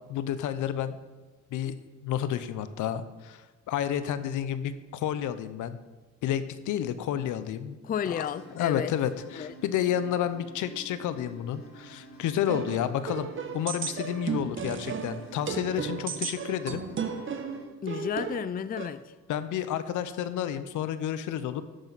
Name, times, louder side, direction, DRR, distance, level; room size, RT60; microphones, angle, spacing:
voice 1, 0.1-1.0 1.5-1.8 2.0-5.8 6.2-7.8 8.1-8.3 8.5-13.3 13.5-16.8 19.3-21.6, left 10 dB, 80° left, 0.8 m, -30 dB
voice 2, 7.8-8.9 9.4-9.5 17.8-19.1, left 8 dB, 30° left, 0.4 m, -32 dB
sound 1, 8.2-17.6, right 2 dB, 60° left, 2.6 m, -49 dB
sound 2, 12.5-18.9, right 6 dB, 40° right, 1.0 m, -34 dB
11.5 x 9.1 x 4.1 m
cardioid pair, 90°, 30 cm